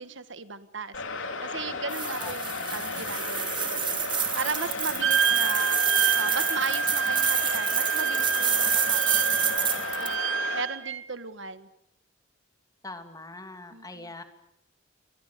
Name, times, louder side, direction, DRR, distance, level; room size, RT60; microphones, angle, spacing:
voice 1, 0.0-5.8 6.2-10.2 10.5-11.7 13.7-14.1, right 5 dB, 65° right, 12 dB, 1.7 m, -37 dB
sound 1, 0.9-10.6, left 4 dB, 75° left, 3.6 m, -34 dB
sound 2, 1.9-10.1, right 8 dB, 25° right, 2.5 m, -28 dB
voice 2, 2.2-3.1 12.8-14.2, left 2 dB, 20° left, 7 dB, 2.7 m, -43 dB
Wind instrument woodwind instrument, 5.0-11.0, right 6 dB, 80° right, 1.3 m, -28 dB
29.5 x 24.0 x 6.9 m, 0.82 s
head